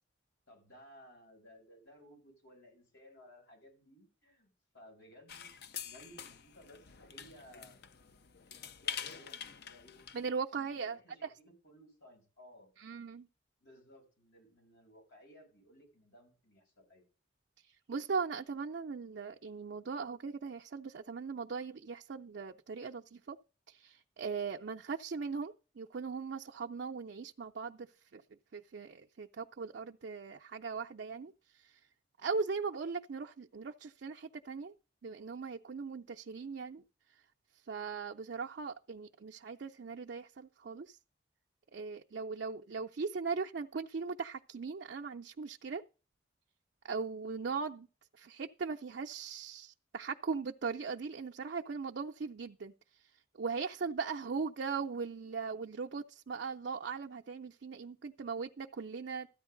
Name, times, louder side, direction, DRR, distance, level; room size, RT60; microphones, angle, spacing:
voice 1, 0.5-5.5 5.8-7.9 8.8-10.0 10.5-12.7 13.6-17.1, equal, 85° left, 6.7 m, -58 dB
sound 1, 5.3-10.3, left 8 dB, 60° left, 0.6 m, -45 dB
voice 2, 10.1-11.3 12.8-13.3 17.7-23.4 23.7-27.9 28.1-28.2 28.5-31.8 32.2-34.7 35.0-36.8 37.7-41.0 41.7-45.8 46.8-47.9 48.1-52.7 53.0-53.1 53.4-59.3, right 5 dB, 70° right, 0.5 m, -39 dB
13.5 x 9.5 x 3.8 m
head